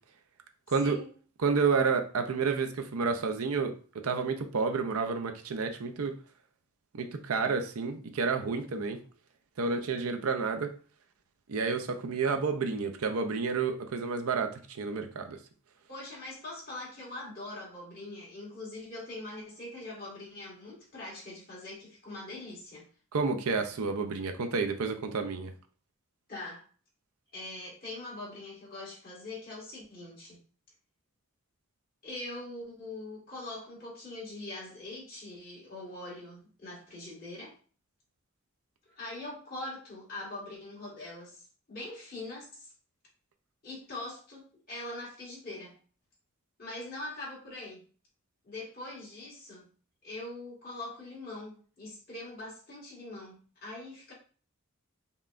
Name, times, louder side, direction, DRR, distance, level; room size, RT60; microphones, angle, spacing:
voice 1, 0.7-1.0 1.4-3.7 4.0-6.1 6.9-9.0 9.6-10.7 11.5-15.4 23.1-25.5, right 4 dB, 85° right, 6 dB, 0.5 m, -30 dB
voice 2, 15.9-22.8 26.3-26.6 27.3-30.4 32.0-37.5 38.9-42.7 43.6-45.8 46.6-47.8 48.4-49.7 50.0-54.1, left 2 dB, 45° left, -5 dB, 1.8 m, -42 dB
5.4 x 2.2 x 2.5 m, 0.40 s
head